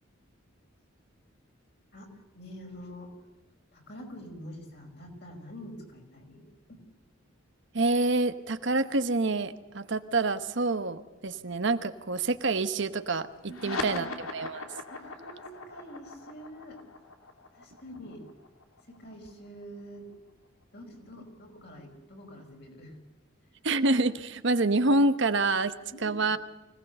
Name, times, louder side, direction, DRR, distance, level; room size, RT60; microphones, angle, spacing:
voice 1, 1.9-3.1 3.7-6.8 13.5-14.1 14.9-16.8 17.5-18.2 18.9-20.1 20.7-23.0 25.9-26.3, equal, 50° left, 2 dB, 4.9 m, -46 dB
voice 2, 7.7-14.1 14.3-14.7 23.6-25.7 26.0-26.4, right 2 dB, 55° right, 10 dB, 1.0 m, -27 dB
sound 1, 13.4-20.3, left 3 dB, 90° left, 2.8 m, -40 dB
25.0 x 17.5 x 6.7 m, 1.1 s
head